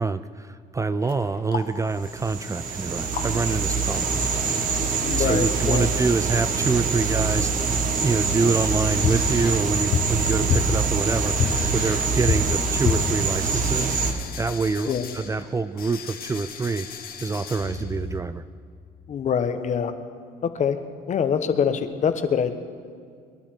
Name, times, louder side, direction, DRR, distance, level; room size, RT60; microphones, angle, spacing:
voice 1, 0.0-4.4 5.2-7.5 8.0-14.0 14.4-16.9 17.2-18.4, right 4 dB, 20° right, 12 dB, 0.4 m, -26 dB
sound 1, 1.0-4.0 4.2-4.3 4.6-4.7 5.5-6.3 6.6-7.3 7.6-18.2, left 7 dB, 60° left, 1.4 m, -31 dB
sound 2, 2.0-14.1, right 4 dB, 50° right, 1.5 m, -25 dB
voice 2, 5.0-5.9 14.9-15.1 19.1-19.9 20.6-20.8 21.1-22.5, left 7 dB, 45° left, 9 dB, 1.1 m, -24 dB
24.0 x 11.5 x 4.5 m, 2.2 s
cardioid pair, 110°, 17 cm